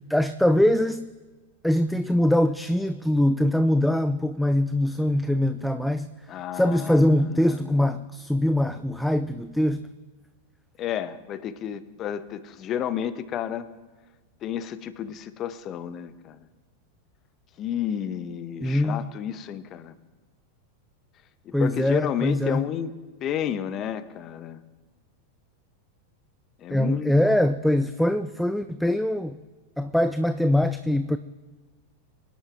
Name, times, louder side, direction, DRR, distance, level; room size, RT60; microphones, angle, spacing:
voice 1, 0.1-1.1 1.6-6.1 6.5-9.9 18.6-19.1 21.5-22.6 26.7-29.4 29.8-31.2, left 1 dB, ahead, 11 dB, 0.4 m, -23 dB
voice 2, 6.3-7.9 10.8-13.7 14.4-16.4 17.6-19.9 21.4-22.9 23.2-24.6 26.6-27.1, left 9 dB, 30° left, 14 dB, 0.8 m, -31 dB
24.5 x 10.0 x 3.4 m, 1.3 s
figure-of-eight pair, 90°, 0 cm